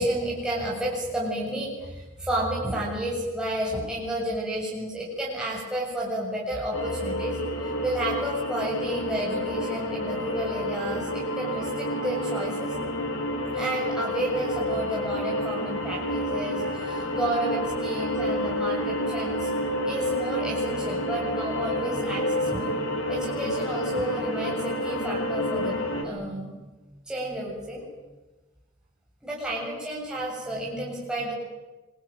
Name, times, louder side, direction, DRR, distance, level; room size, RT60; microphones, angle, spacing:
voice 1, 0.0-7.4 7.8-12.7 13.5-19.5 19.9-22.8 23.1-26.5 27.1-27.9 29.2-31.3, right 1 dB, 5° right, -5 dB, 7.3 m, -31 dB
sound 1, 6.7-26.0, left 1 dB, 90° left, 5.6 m, -29 dB
27.0 x 23.0 x 9.2 m, 1.2 s
head